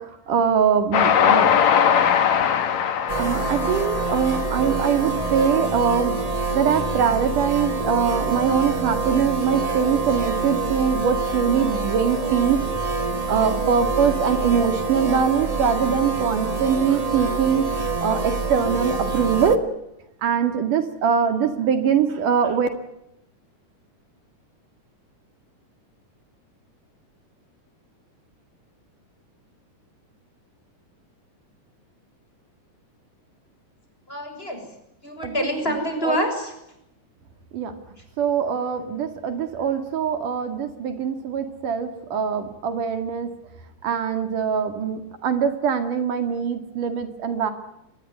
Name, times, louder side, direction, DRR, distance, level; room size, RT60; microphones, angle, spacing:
voice 1, 0.0-1.5 3.2-6.2 6.5-12.6 13.3-19.6 20.2-22.7 35.2-35.5 36.0-36.2 37.5-37.7 38.2-43.3 43.8-47.5, right 7 dB, 75° right, 8 dB, 3.7 m, -23 dB
Train, 0.9-5.3, left 8 dB, 60° left, 2.9 m, -20 dB
sound 1, 3.1-19.6, right 3 dB, 40° right, 0.5 m, -26 dB
voice 2, 34.1-34.6 35.0-36.5 38.0-38.1, equal, 15° left, 5 dB, 6.8 m, -26 dB
24.5 x 20.5 x 9.8 m, 0.83 s
omnidirectional pair, 3.7 m